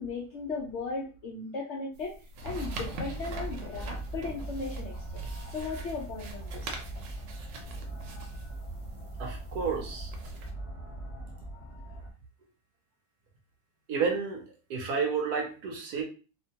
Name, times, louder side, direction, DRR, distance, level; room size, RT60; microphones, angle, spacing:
voice 1, 0.0-5.2 5.5-6.8, left 3 dB, 75° left, -1 dB, 0.6 m, -37 dB
sound 1, 1.9-10.5, right 2 dB, 90° right, 1.3 m, -44 dB
wharf island, 2.4-12.1, right 2 dB, 30° left, 0.7 m, -40 dB
voice 2, 9.2-10.1 13.9-16.0, right 5 dB, 70° right, 2 dB, 1.1 m, -31 dB
2.9 x 2.1 x 2.8 m, 0.34 s
omnidirectional pair, 1.8 m